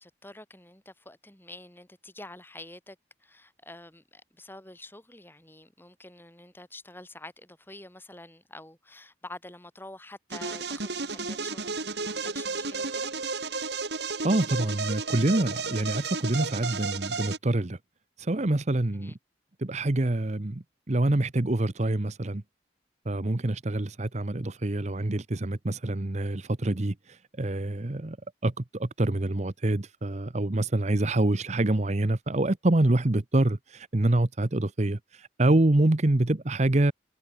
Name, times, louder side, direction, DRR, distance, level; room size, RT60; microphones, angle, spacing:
voice 1, 0.0-13.1 18.9-19.1, left 2 dB, 10° left, 7.9 m, -47 dB
sound 1, 10.3-17.4, right 4 dB, 70° right, 4.9 m, -33 dB
voice 2, 14.2-17.8 18.2-19.1 19.6-22.4 23.1-28.2 28.4-36.9, right 1 dB, 40° right, 0.9 m, -26 dB
head